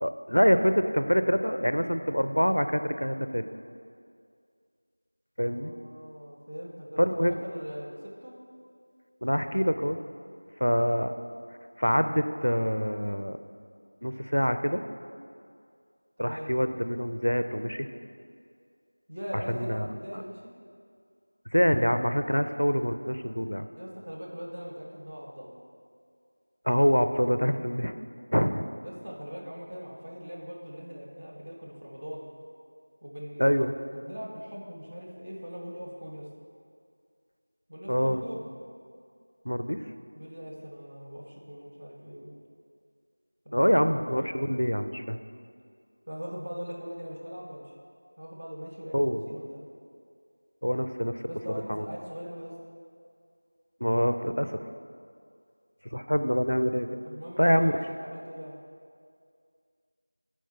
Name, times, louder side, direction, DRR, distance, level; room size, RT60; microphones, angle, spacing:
voice 1, 0.0-3.5 5.4-5.7 7.0-7.4 9.2-10.0 10.6-11.1 11.8-13.4 14.0-14.8 16.2-17.9 19.5-19.9 20.1-20.2 21.5-23.7 26.7-27.9 28.3-28.7 33.4-33.7 37.9-38.2 39.5-39.8 43.5-45.2 48.9-49.2 50.6-51.2 51.7-51.9 53.8-54.6 55.9-56.9 57.4-57.8, equal, 85° left, 9 dB, 0.4 m, -25 dB
voice 2, 5.4-8.3 16.2-16.5 19.1-20.4 23.8-25.5 28.8-32.3 33.0-33.6 33.9-36.3 37.7-38.5 40.1-42.3 43.4-43.6 44.1-44.3 46.1-47.7 48.2-49.6 51.3-52.6 57.0-58.6, equal, 25° right, -4 dB, 0.7 m, -41 dB
6.9 x 4.4 x 4.4 m, 2.3 s
figure-of-eight pair, 175°, 0 cm